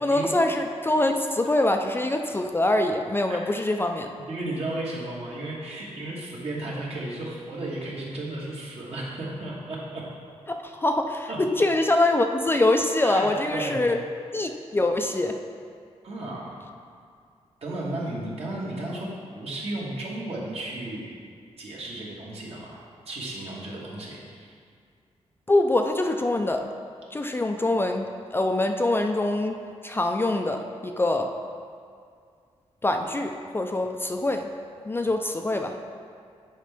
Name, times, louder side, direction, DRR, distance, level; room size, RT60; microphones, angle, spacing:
voice 1, 0.0-4.1 10.5-11.3 11.6-14.0 14.3-15.3 25.5-26.6 27.1-28.1 28.3-31.3 32.8-34.5 34.9-35.8, left 2 dB, 20° left, 4 dB, 0.3 m, -24 dB
voice 2, 4.3-10.0 11.3-11.4 13.0-13.8 16.0-16.6 17.6-21.1 21.6-24.6, right 1 dB, 60° right, -4 dB, 1.5 m, -34 dB
7.4 x 4.5 x 3.5 m, 2.2 s
cardioid pair, 95°, 12 cm